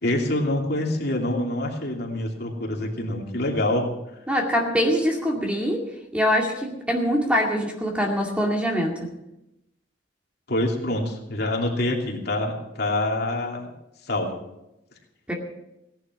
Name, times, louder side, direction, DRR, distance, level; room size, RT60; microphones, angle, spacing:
voice 1, 0.0-3.9 10.5-13.7 14.0-14.4, left 1 dB, 60° left, 0 dB, 2.9 m, -26 dB
voice 2, 4.3-5.8 6.1-9.1 15.3-15.4, equal, 5° right, 0 dB, 2.2 m, -23 dB
17.5 x 11.0 x 6.2 m, 0.89 s
head